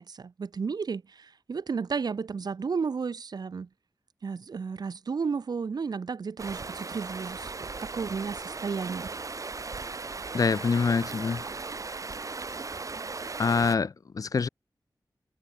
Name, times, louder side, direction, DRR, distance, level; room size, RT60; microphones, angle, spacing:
voice 1, 0.0-3.7 4.2-7.5 7.8-9.1, right 5 dB, 65° right, 0.6 m, -33 dB
Stream, 6.4-13.8, right 4 dB, 45° right, 1.1 m, -37 dB
voice 2, 10.3-11.4 13.4-14.5, left 5 dB, 50° left, 0.4 m, -25 dB
wide cardioid pair, 85°, 8 cm